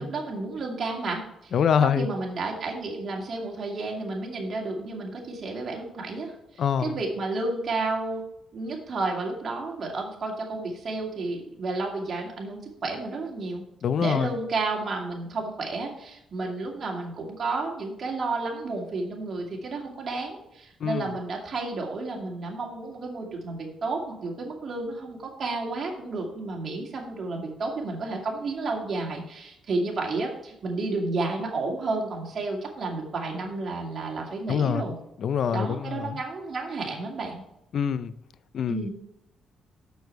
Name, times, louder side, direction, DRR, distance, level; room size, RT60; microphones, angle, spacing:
voice 1, 0.0-1.5 1.8-8.2 8.5-13.6 14.0-34.9 35.5-37.4 38.7-38.9, right 3 dB, 50° right, -1 dB, 2.4 m, -31 dB
voice 2, 1.5-2.1 6.6-7.0 13.8-14.3 20.8-21.1 34.5-34.9 35.2-36.2 37.7-38.1 38.5-38.9, left 8 dB, 60° left, 15 dB, 0.4 m, -25 dB
6.9 x 6.5 x 4.6 m, 0.81 s
cardioid pair, 90°, 0 cm